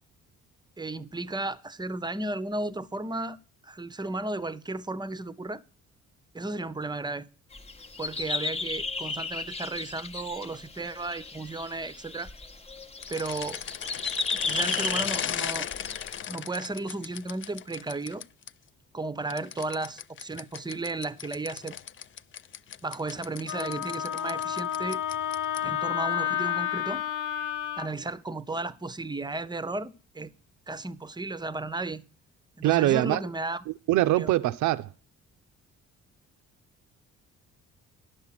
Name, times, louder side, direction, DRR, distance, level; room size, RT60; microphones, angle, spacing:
voice 1, 0.8-3.4 3.6-5.6 6.3-7.3 8.0-12.3 13.1-13.6 14.3-15.7 16.3-18.2 18.9-21.8 22.8-25.0 25.6-27.0 27.8-30.3 30.7-32.0 32.6-33.6 34.2-34.3, right 2 dB, 15° right, 0.6 m, -34 dB
sound 1, 7.5-16.2, left 3 dB, 20° left, 0.8 m, -35 dB
sound 2, 13.0-18.5 19.3-25.8, left 9 dB, 40° left, 0.4 m, -37 dB
Wind instrument woodwind instrument, 23.5-27.9, left 10 dB, 85° left, 0.7 m, -30 dB
voice 2, 32.6-33.2 33.7-34.9, right 15 dB, 75° right, 0.5 m, -23 dB
10.5 x 6.7 x 5.7 m
cardioid pair, 90°, 30 cm